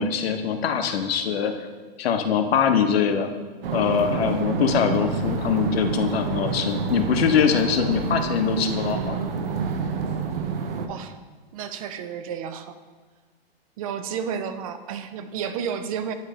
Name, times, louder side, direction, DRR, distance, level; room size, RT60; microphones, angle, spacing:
voice 1, 0.0-1.5 2.0-3.3 3.7-9.2, left 7 dB, 80° left, 6 dB, 0.9 m, -23 dB
sound 1, 3.6-10.9, right 5 dB, 70° right, 0.8 m, -28 dB
voice 2, 11.5-12.7 13.8-16.1, right 7 dB, 35° right, 10 dB, 0.4 m, -31 dB
9.4 x 3.2 x 4.9 m, 1.4 s
hypercardioid pair, 155°, 30 cm